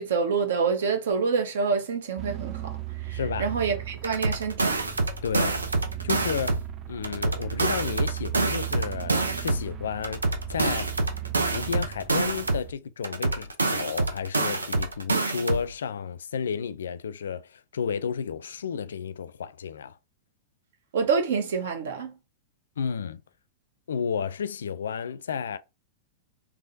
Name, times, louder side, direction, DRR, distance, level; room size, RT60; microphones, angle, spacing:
voice 1, 0.0-2.8 3.0-4.8 20.9-22.1, right 5 dB, 65° right, 1.0 m, -27 dB
sound 1, 2.2-12.7, right 11 dB, 30° right, 0.6 m, -36 dB
voice 2, 3.1-3.5 5.2-5.6 6.0-10.2 10.5-11.0 11.5-20.0 22.8-23.2 23.9-25.6, left 7 dB, 75° left, 0.3 m, -32 dB
sound 2, 4.0-6.7 7.0-9.7 10.0-12.7 13.0-15.7, right 2 dB, 85° right, 0.6 m, -27 dB
3.6 x 3.0 x 2.7 m
figure-of-eight pair, 100°, 0 cm